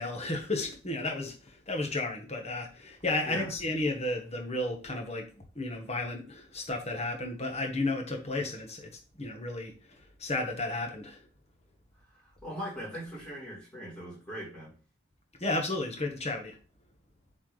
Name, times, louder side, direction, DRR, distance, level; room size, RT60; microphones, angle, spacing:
voice 1, 0.0-8.9 9.2-11.3 15.4-16.6, left 2 dB, 35° left, 1.4 m, -33 dB
voice 2, 12.1-14.7, equal, 5° left, 4.0 m, -40 dB
7.9 x 4.3 x 3.4 m
head